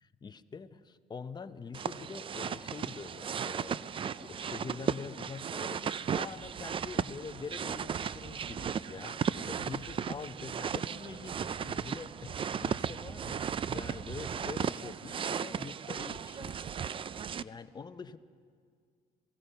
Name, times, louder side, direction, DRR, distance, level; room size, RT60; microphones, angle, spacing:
voice 1, 0.2-3.8 4.2-16.7 17.4-18.2, left 5 dB, 25° left, 11 dB, 0.8 m, -45 dB
sound 1, 1.7-17.4, right 7 dB, 30° right, 0.4 m, -36 dB
27.5 x 17.0 x 5.6 m, 2.1 s
cardioid pair, 110°, 17 cm